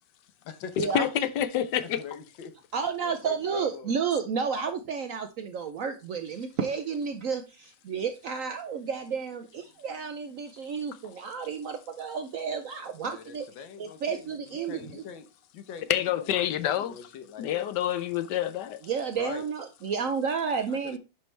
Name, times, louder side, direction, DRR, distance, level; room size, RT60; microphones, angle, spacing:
voice 1, 0.8-2.0 15.9-17.0 17.4-18.8, left 11 dB, 70° left, 1.2 m, -27 dB
voice 2, 2.0-2.5 3.0-3.9 13.0-15.3 15.5-17.7 19.1-19.4 20.7-21.0, left 7 dB, 90° left, 1.7 m, -43 dB
voice 3, 2.7-13.5 13.8-15.0 18.8-21.0, right 6 dB, 65° right, 0.8 m, -31 dB
10.5 x 4.6 x 3.2 m
omnidirectional pair, 2.0 m